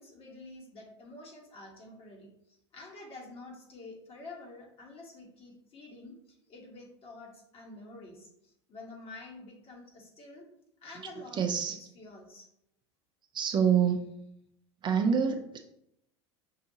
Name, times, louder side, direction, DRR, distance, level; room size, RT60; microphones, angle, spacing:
voice 1, 0.0-10.5 10.8-12.5, left 2 dB, 40° left, -1 dB, 1.4 m, -49 dB
voice 2, 11.3-11.8 13.3-14.1 14.8-15.6, right 7 dB, 30° right, 5 dB, 0.5 m, -26 dB
5.5 x 2.7 x 2.7 m, 0.76 s
hypercardioid pair, 80°, 15 cm